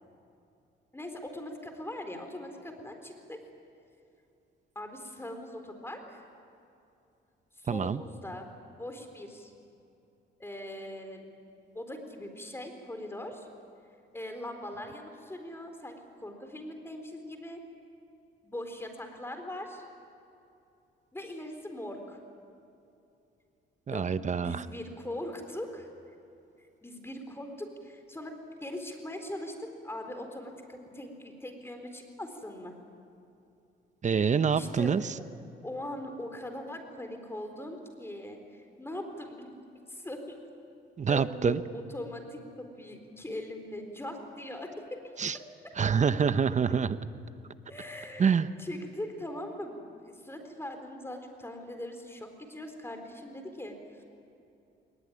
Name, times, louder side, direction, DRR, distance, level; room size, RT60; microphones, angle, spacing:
voice 1, 0.9-3.4 4.8-6.2 7.5-8.5 8.8-9.5 10.4-11.3 11.7-13.5 14.1-17.6 18.4-19.8 21.1-22.2 23.9-24.1 24.4-25.9 26.6-32.7 34.5-34.9 35.6-39.5 39.9-40.4 41.0-45.1 47.7-48.3 48.6-49.8 50.1-54.0, left 1 dB, 10° left, 5 dB, 3.9 m, -41 dB
voice 2, 7.7-8.0 23.9-24.6 34.0-35.2 41.0-41.6 45.2-45.4 45.8-47.0 48.2-48.5, right 6 dB, 35° right, 13 dB, 0.9 m, -26 dB
21.0 x 19.5 x 9.9 m, 2.7 s
cardioid pair, 90°, 20 cm